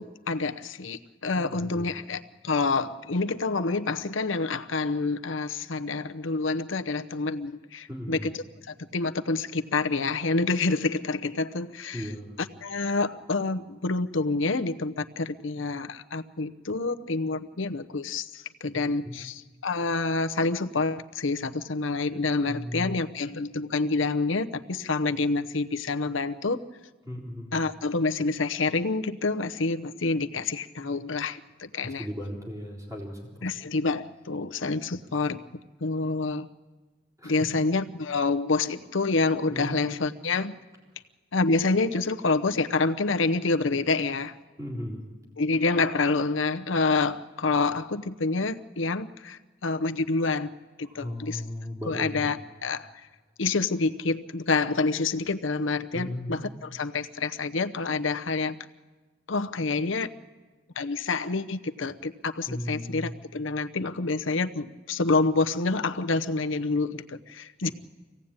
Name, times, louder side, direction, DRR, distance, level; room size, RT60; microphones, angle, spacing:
voice 1, 0.0-8.4 8.7-12.1 12.4-26.6 27.5-32.1 33.4-35.4 35.8-36.5 37.2-40.6 41.3-44.3 45.4-50.5 50.8-51.4 51.9-52.9 53.4-58.6 59.3-60.1 60.8-67.7, left 3 dB, 75° left, 8 dB, 0.8 m, -27 dB
voice 2, 1.3-1.9 7.9-8.3 11.9-12.3 19.0-19.2 22.5-23.0 27.1-27.6 31.8-33.5 37.2-37.4 39.5-39.9 44.6-45.0 50.8-52.3 55.9-56.4 62.5-63.1, equal, 15° right, -1 dB, 3.7 m, -36 dB
25.0 x 17.0 x 8.8 m, 1.3 s
head